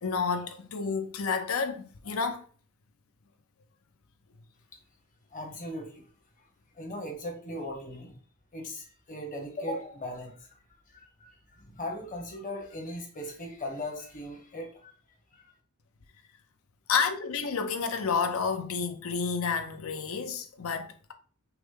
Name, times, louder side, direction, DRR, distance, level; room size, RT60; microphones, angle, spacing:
voice 1, 0.0-2.5 16.9-21.1, left 5 dB, 70° left, 0.6 m, -30 dB
voice 2, 5.3-6.0 6.8-8.2 8.5-10.5 10.9-14.9 15.3-15.5, left 1 dB, 40° left, 1.1 m, -38 dB
5.8 x 2.1 x 3.7 m
head